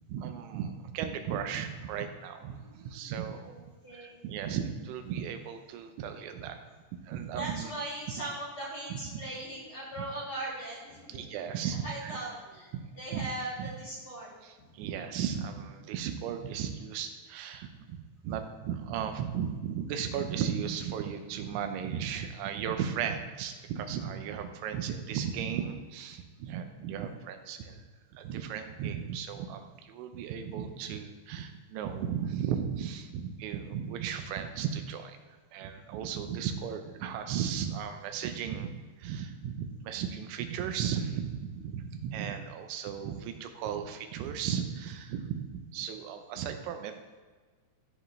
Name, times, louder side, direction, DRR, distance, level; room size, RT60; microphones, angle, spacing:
voice 1, 0.1-3.5 3.9-6.6 7.0-7.7 8.9-9.2 11.1-12.2 12.7-12.8 13.1-13.3 13.6-13.7 14.4-27.8 28.1-35.2 35.5-38.7 39.0-47.2, right 8 dB, 90° right, 7 dB, 3.2 m, -35 dB
voice 2, 2.4-3.1 3.4-4.2 7.3-11.2 11.6-14.4, right 2 dB, 30° left, -8 dB, 3.4 m, -40 dB
14.5 x 7.6 x 3.2 m, 1.4 s
omnidirectional pair, 5.2 m